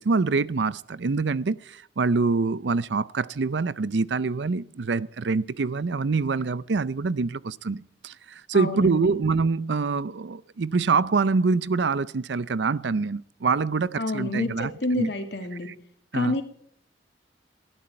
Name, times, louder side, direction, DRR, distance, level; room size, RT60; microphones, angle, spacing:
voice 1, 0.0-15.1 16.1-16.4, right 4 dB, 75° right, 0.5 m, -25 dB
voice 2, 8.5-9.1 14.0-15.7 16.1-16.4, left 1 dB, 65° left, 2.6 m, -28 dB
19.0 x 12.5 x 4.4 m
head